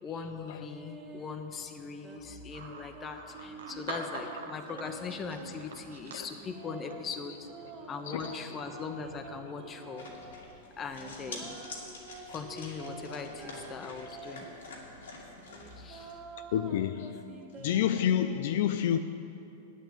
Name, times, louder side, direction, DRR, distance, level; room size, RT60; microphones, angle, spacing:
voice 1, 0.0-7.3 7.9-10.1 10.8-11.6 12.3-14.5 15.7-16.2, left 5 dB, 25° left, 1.1 m, -40 dB
sound 1, 0.7-1.4 2.0-5.5 6.0-10.3 10.8-14.7 15.2-18.3, right 4 dB, 35° right, 2.0 m, -48 dB
sound 2, 2.5-10.4, right 4 dB, 85° right, 1.1 m, -47 dB
voice 2, 3.9-4.3 6.1-6.3 8.1-8.6 14.0-14.1 16.5-17.2 17.6-19.0, left 10 dB, 70° left, 0.4 m, -30 dB
sound 3, 10.0-16.1, left 3 dB, 90° left, 2.4 m, -47 dB
8.9 x 8.2 x 8.9 m
hypercardioid pair, 115°, 0 cm